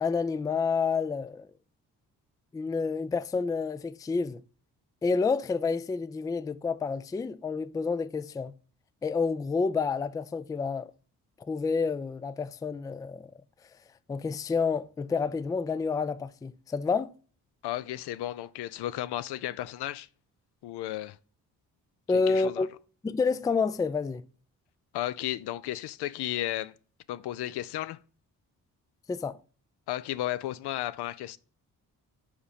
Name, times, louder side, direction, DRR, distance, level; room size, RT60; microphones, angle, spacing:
voice 1, 0.0-1.5 2.5-4.4 5.0-8.5 9.0-10.9 11.5-13.3 14.1-17.1 22.1-22.7 23.0-24.2 29.1-29.4, left 4 dB, 10° left, 0.3 m, -29 dB
voice 2, 17.6-20.1 20.6-21.2 22.1-22.7 24.9-26.7 27.1-28.0 29.9-31.4, left 14 dB, 70° left, 0.5 m, -34 dB
5.1 x 5.0 x 5.0 m
supercardioid pair, 45°, 42 cm